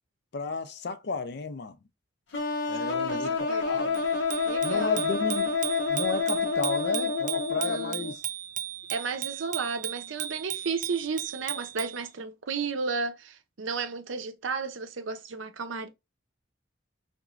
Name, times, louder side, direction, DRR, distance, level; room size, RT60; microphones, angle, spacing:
voice 1, 0.3-1.8 2.7-4.0 4.6-5.6 5.9-8.2, left 4 dB, 55° left, 0.5 m, -32 dB
sound 1, 2.3-8.1, left 4 dB, 70° left, 1.0 m, -28 dB
voice 2, 2.7-4.0 4.4-5.0 7.5-8.1 8.9-15.9, right 4 dB, 85° right, 0.6 m, -33 dB
Bicycle bell, 3.9-12.0, right 11 dB, 40° right, 0.4 m, -36 dB
3.6 x 3.0 x 2.4 m
head